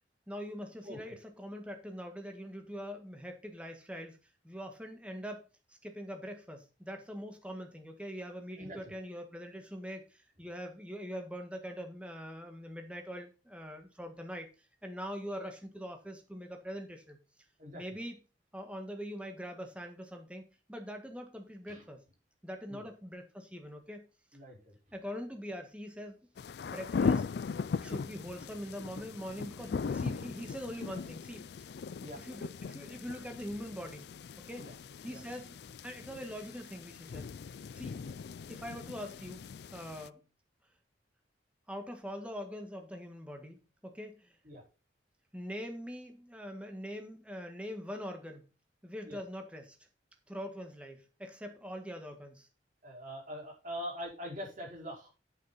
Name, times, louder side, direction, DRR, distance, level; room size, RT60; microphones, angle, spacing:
voice 1, 0.3-4.2 4.4-14.5 14.8-17.2 17.7-18.2 18.5-20.4 20.7-22.0 22.4-24.0 24.9-26.2 26.6-27.3 27.8-31.7 32.2-34.1 34.5-34.7 35.0-35.5 35.8-37.3 37.8-38.0 38.5-39.4 39.7-40.2 41.7-44.4 45.3-48.5 48.8-49.8 50.3-52.5, equal, 5° right, 4 dB, 1.7 m, -43 dB
voice 2, 0.8-1.2 8.6-8.9 17.6-17.8 21.7-21.8 22.7-22.9 24.3-24.7 32.0-32.2 34.6-34.7 35.1-35.2 38.0-38.1 44.4-44.6 49.1-49.2 52.8-55.1, equal, 45° right, -2 dB, 4.8 m, -43 dB
sound 1, 26.4-40.1, left 5 dB, 60° left, 0.4 m, -38 dB
8.7 x 7.9 x 4.2 m, 0.31 s
head